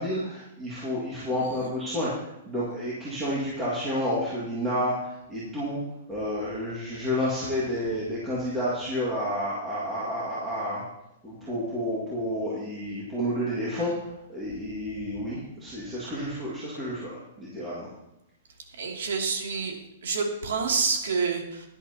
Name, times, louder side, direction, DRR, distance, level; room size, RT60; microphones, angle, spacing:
voice 1, 0.0-2.1 2.5-4.9 5.3-5.8 6.1-10.8 11.2-13.9 14.3-17.1 17.4-17.9, equal, 10° right, -8 dB, 2.0 m, -30 dB
voice 2, 18.8-19.8 20.0-21.8, right 5 dB, 75° right, 1 dB, 2.6 m, -28 dB
16.5 x 10.5 x 2.9 m, 0.87 s
hypercardioid pair, 180°, 0 cm